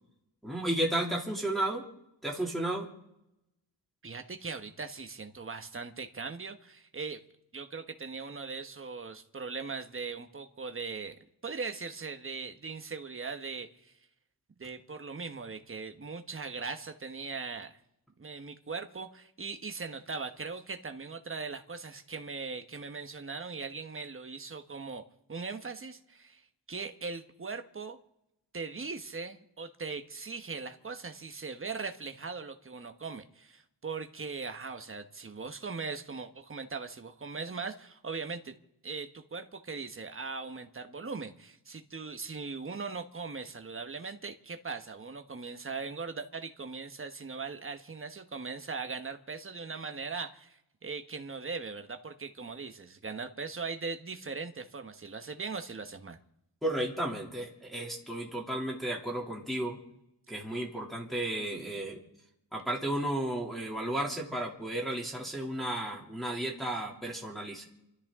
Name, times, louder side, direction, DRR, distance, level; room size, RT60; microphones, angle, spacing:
voice 1, 0.4-1.8 2.2-2.9 56.6-59.8 60.3-62.0 62.5-67.6, right 1 dB, ahead, -4 dB, 2.7 m, -33 dB
voice 2, 4.0-7.2 7.5-11.1 11.4-13.9 14.6-17.8 18.2-25.0 25.3-26.4 26.7-28.0 28.5-38.5 38.8-56.2, right 4 dB, 30° right, 7 dB, 1.2 m, -40 dB
29.0 x 13.0 x 3.7 m, 0.83 s
wide cardioid pair, 165°, 45 cm